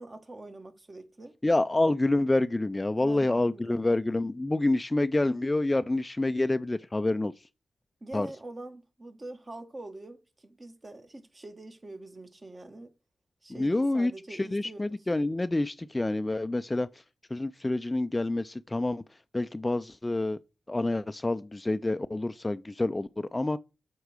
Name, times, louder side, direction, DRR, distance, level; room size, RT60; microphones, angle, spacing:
voice 1, 0.0-1.3 2.9-3.9 8.0-12.9 13.4-15.0, right 2 dB, 35° right, 1.4 m, -44 dB
voice 2, 1.4-7.5 8.1-8.3 13.5-17.0 17.3-20.4 20.7-23.6, left 2 dB, 20° left, 0.4 m, -28 dB
8.0 x 4.5 x 4.9 m
cardioid pair, 60°, 0 cm